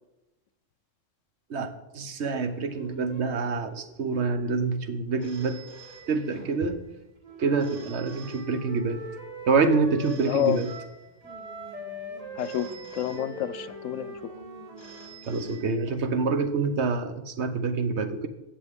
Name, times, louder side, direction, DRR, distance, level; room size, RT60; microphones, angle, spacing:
voice 1, 1.5-5.6 6.1-6.8 7.4-9.1 9.5-10.7 15.3-18.3, right 4 dB, 65° right, 9 dB, 1.1 m, -26 dB
sound 1, 2.3-15.8, right 1 dB, 5° right, 3.9 m, -51 dB
Telephone, 5.2-6.7 7.6-9.1 10.0-11.5 12.4-13.9 14.8-16.3, right 6 dB, 40° left, 2.3 m, -50 dB
Wind instrument woodwind instrument, 7.2-11.0 11.2-15.2, right 1 dB, 30° right, 1.3 m, -41 dB
voice 2, 10.2-10.6 12.3-14.3, left 11 dB, 90° left, 16 dB, 1.0 m, -29 dB
16.0 x 6.7 x 3.6 m, 1.0 s
omnidirectional pair, 1.3 m